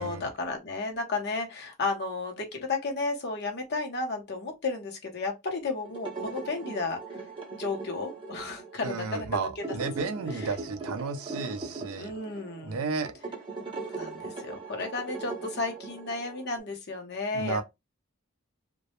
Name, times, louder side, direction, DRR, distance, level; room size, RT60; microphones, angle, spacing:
voice 1, 0.0-7.2 7.6-9.6 10.0-10.5 12.0-12.8 13.9-17.6, left 3 dB, 50° left, 0.7 m, -33 dB
sound 1, 5.8-16.6, right 3 dB, 25° right, 0.6 m, -40 dB
voice 2, 8.8-12.1 12.6-13.1 17.3-17.6, right 4 dB, 85° right, 0.4 m, -33 dB
2.2 x 2.0 x 2.8 m
head